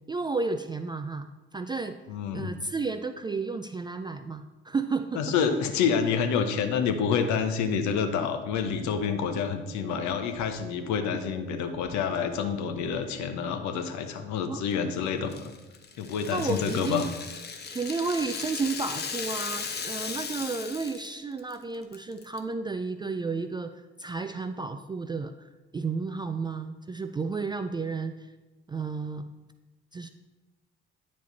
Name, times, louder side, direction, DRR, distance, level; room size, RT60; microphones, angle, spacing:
voice 1, 0.1-1.3 1.5-2.0 2.3-5.2 14.5-14.6 16.3-17.1 17.7-23.7 24.0-28.3 28.7-29.3 29.9-30.1, right 4 dB, 15° right, 8 dB, 0.3 m, -32 dB
voice 2, 2.1-2.5 5.1-15.5 16.0-17.1, left 6 dB, 60° left, 7 dB, 0.9 m, -28 dB
sound 1, 8.9-13.5, right 1 dB, 70° right, 1.6 m, -45 dB
Rattle (instrument), 15.3-21.1 21.4-21.5 21.9-22.4, left 5 dB, 30° left, 0.9 m, -37 dB
9.3 x 4.7 x 4.1 m, 1.1 s
hypercardioid pair, 55°, 33 cm